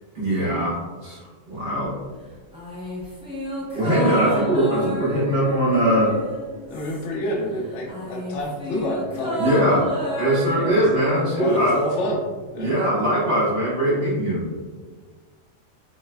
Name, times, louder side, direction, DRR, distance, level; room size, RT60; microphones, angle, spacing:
voice 1, 0.1-1.2 1.4-1.9 3.7-6.1 9.4-9.9 10.2-11.7 12.6-14.5, right 1 dB, 45° right, -10 dB, 1.5 m, -21 dB
sound 1, 2.5-7.3 7.6-11.9 12.2-12.3, equal, 5° right, 0.6 m, -32 dB
voice 2, 6.7-9.9 10.6-10.9 11.3-12.8, equal, 80° left, -1 dB, 0.9 m, -28 dB
3.2 x 3.1 x 2.2 m, 1.4 s
omnidirectional pair, 1.2 m